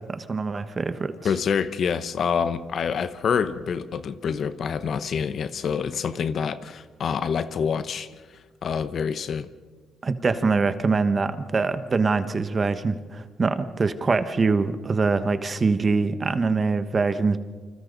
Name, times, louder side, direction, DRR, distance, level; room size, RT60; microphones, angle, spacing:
voice 1, 0.1-1.1 10.0-17.4, right 4 dB, 35° right, 1.3 m, -24 dB
voice 2, 1.2-8.1 8.6-9.5, left 6 dB, 55° left, 1.0 m, -26 dB
28.5 x 26.0 x 4.0 m
cardioid pair, 90°, 0 cm